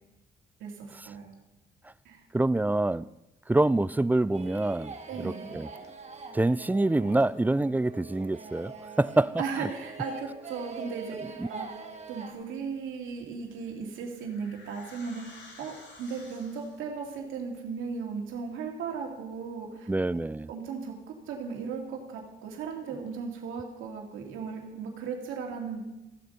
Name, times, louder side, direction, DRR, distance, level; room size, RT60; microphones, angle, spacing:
voice 1, 0.6-1.3 2.0-2.2 5.1-5.5 9.4-11.7 12.1-19.9 20.5-21.0 21.3-25.8, right 5 dB, 90° right, 1 dB, 2.5 m, -36 dB
voice 2, 2.3-3.1 3.5-5.7 6.3-8.7 9.0-9.3 11.4-11.5 19.9-20.5, right 2 dB, 10° right, 17 dB, 0.3 m, -26 dB
sound 1, 4.3-12.3, right 4 dB, 35° right, 1.5 m, -44 dB
sound 2, 13.5-17.0, left 2 dB, 65° left, 3.2 m, -52 dB
15.0 x 7.6 x 5.4 m, 0.97 s
cardioid pair, 90°, 20 cm